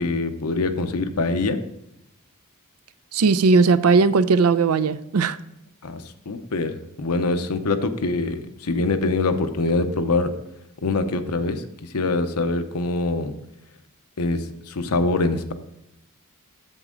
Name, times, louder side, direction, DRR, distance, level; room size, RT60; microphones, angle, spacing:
voice 1, 0.0-1.6 5.8-10.3 10.8-13.3 14.2-15.5, left 3 dB, 90° left, 0.8 m, -24 dB
voice 2, 3.1-5.4, right 4 dB, 75° right, 0.5 m, -18 dB
7.9 x 7.2 x 3.8 m
head